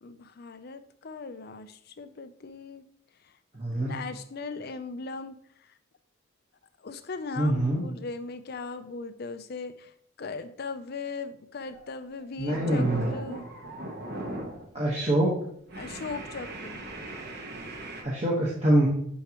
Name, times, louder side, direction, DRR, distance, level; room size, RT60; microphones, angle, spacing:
voice 1, 0.0-2.8 3.8-5.4 6.8-9.9 10.2-13.5 15.7-16.8, left 4 dB, 50° left, 11 dB, 0.5 m, -38 dB
voice 2, 3.5-3.9 7.4-7.9 12.4-13.1 14.7-15.4 18.0-18.9, right 1 dB, 30° right, -5 dB, 1.2 m, -24 dB
sound 1, 11.6-11.9 12.2-14.7 15.0-15.2 15.7-18.0, right 1 dB, 50° right, 1.2 m, -38 dB
10.0 x 4.7 x 2.9 m, 0.68 s
head